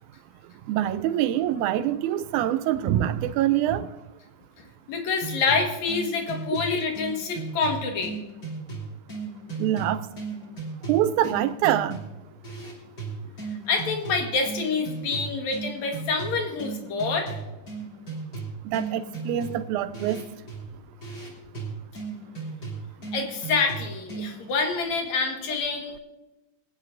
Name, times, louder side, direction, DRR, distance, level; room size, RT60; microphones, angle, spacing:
voice 1, 0.7-3.9 9.6-10.1 10.9-12.0 18.7-20.2, right 12 dB, 85° right, 2.0 m, -25 dB
voice 2, 4.9-8.2 13.7-17.4 23.1-26.0, left 4 dB, 70° left, 2.7 m, -27 dB
sound 1, 5.2-24.5, right 4 dB, 35° left, 3.3 m, -36 dB
23.5 x 9.3 x 2.6 m
omnidirectional pair, 3.5 m